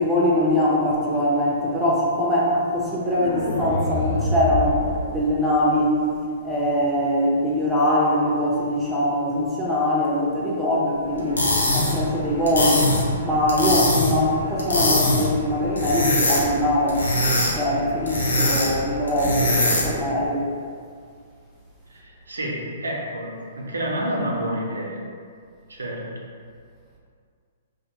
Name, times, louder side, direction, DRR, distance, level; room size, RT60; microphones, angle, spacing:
voice 1, 0.0-6.0 6.4-11.4 11.7-12.9 13.2-17.0 17.3-20.5, left 1 dB, 5° right, -7 dB, 0.6 m, -22 dB
sound 1, 3.0-6.0, left 1 dB, 65° left, 1.0 m, -27 dB
sound 2, 11.2-20.1, left 1 dB, 85° left, 0.5 m, -23 dB
voice 2, 21.9-25.0 25.7-26.1, equal, 90° right, -2 dB, 0.5 m, -29 dB
2.1 x 2.1 x 2.9 m, 2.1 s
hypercardioid pair, 125°, 0 cm